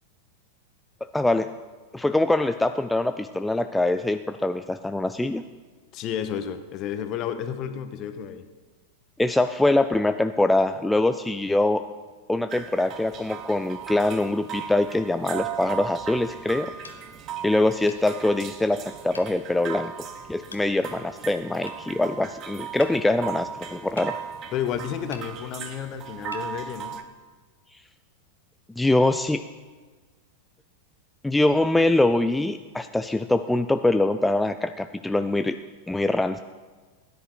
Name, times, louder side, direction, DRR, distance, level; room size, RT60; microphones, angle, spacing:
voice 1, 1.0-1.5 1.9-5.4 9.2-11.9 12.3-16.7 17.4-19.9 20.3-24.1 28.8-29.4 31.2-35.6 35.9-36.4, left 2 dB, 5° left, 9 dB, 0.4 m, -23 dB
voice 2, 5.9-8.5 24.5-27.0, left 9 dB, 40° left, 9 dB, 1.1 m, -31 dB
sound 1, 12.5-27.0, right 8 dB, 35° right, 1.1 m, -37 dB
sound 2, 16.8-17.0 17.9-18.1 19.1-19.3 20.5-20.7 21.7-21.8 22.8-23.0 24.0-24.1 25.1-25.3 26.3-26.5, left 3 dB, 80° left, 1.1 m, -41 dB
17.0 x 10.5 x 4.8 m, 1.4 s
figure-of-eight pair, 90°, 0 cm